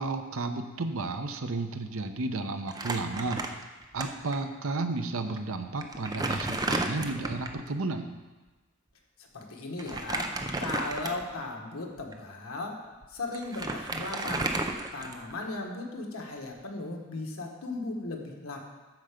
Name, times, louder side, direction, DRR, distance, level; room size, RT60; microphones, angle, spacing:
voice 1, 0.0-3.4 3.9-8.1, right 3 dB, 75° right, 7 dB, 0.8 m, -32 dB
Crumpling crinkling, 2.7-4.0 4.3-4.4 5.3-5.4 5.8-7.6 9.8-11.4 12.0-12.1 13.0-13.1 13.3-15.4, right 2 dB, 20° right, 0.5 m, -33 dB
voice 2, 9.2-12.8 13.1-14.5 14.9-18.6, left 2 dB, 85° left, 1 dB, 1.5 m, -37 dB
9.4 x 6.7 x 5.1 m, 1.2 s
head